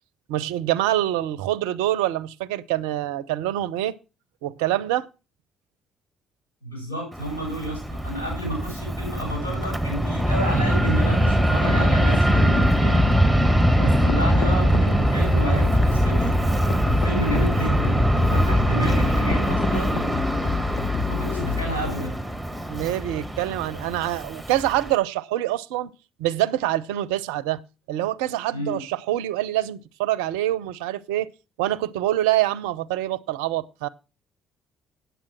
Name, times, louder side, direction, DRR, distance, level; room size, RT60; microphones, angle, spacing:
voice 1, 0.3-4.0 4.4-5.1 22.7-25.9 26.2-27.6 27.9-31.3 31.6-33.9, right 14 dB, 70° right, 0.5 m, -25 dB
voice 2, 6.6-16.4 16.9-20.2 21.1-22.2 28.5-28.8, equal, 85° left, 5.9 m, -31 dB
Fixed-wing aircraft airplane, 7.1-24.9, right 1 dB, ahead, 1.9 m, -22 dB
sound 1, 11.5-21.9, left 7 dB, 55° left, 1.4 m, -30 dB
8.6 x 8.1 x 6.0 m
figure-of-eight pair, 45°, 0 cm